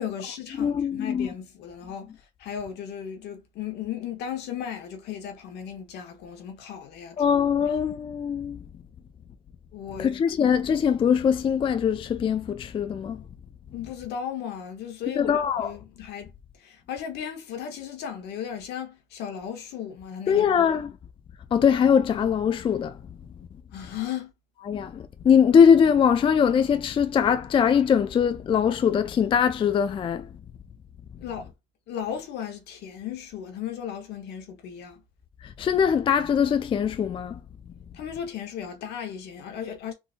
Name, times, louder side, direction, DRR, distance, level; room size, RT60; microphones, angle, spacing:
voice 1, 0.0-2.1 2.4-7.3 9.7-10.2 13.7-16.3 16.6-20.7 23.7-24.3 31.2-31.5 31.9-35.0 37.9-39.9, left 8 dB, 80° left, 1.1 m, -36 dB
voice 2, 0.6-1.3 7.2-8.6 10.0-13.2 15.2-15.7 20.3-20.9 21.5-23.0 24.7-30.3 35.4-37.4, left 7 dB, 30° left, 0.4 m, -22 dB
3.7 x 2.6 x 2.5 m
cardioid pair, 110°, 17 cm